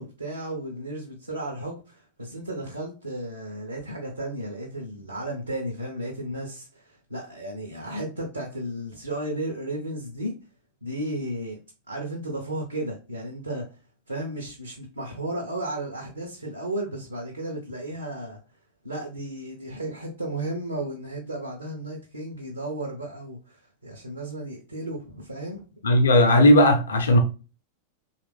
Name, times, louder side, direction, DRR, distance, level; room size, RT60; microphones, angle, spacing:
voice 1, 0.0-10.3 10.8-11.6 11.9-13.8 14.1-18.4 18.8-25.6, right 1 dB, 85° right, 0.6 m, -34 dB
voice 2, 25.8-27.2, left 1 dB, 65° left, 0.6 m, -16 dB
3.2 x 2.4 x 3.1 m
figure-of-eight pair, 90°, 0 cm